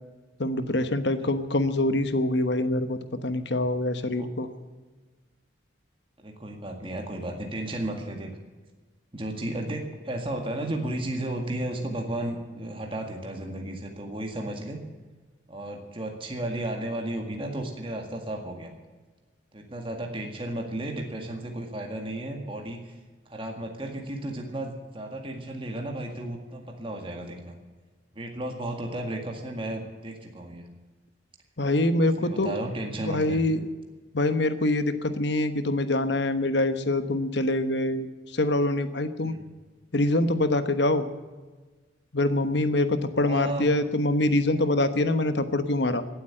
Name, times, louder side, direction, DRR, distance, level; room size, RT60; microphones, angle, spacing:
voice 1, 0.4-4.5 31.6-32.5 33.0-33.7 34.1-38.1 38.3-39.3 39.9-41.1 42.1-46.0, left 1 dB, 60° left, 10 dB, 1.2 m, -25 dB
voice 2, 6.2-8.3 9.1-14.8 15.5-18.7 19.5-23.0 23.3-27.6 28.2-30.7 32.2-33.4 39.2-39.5 43.2-43.8, right 1 dB, 25° right, 2 dB, 1.9 m, -34 dB
16.5 x 8.5 x 8.8 m, 1.3 s
head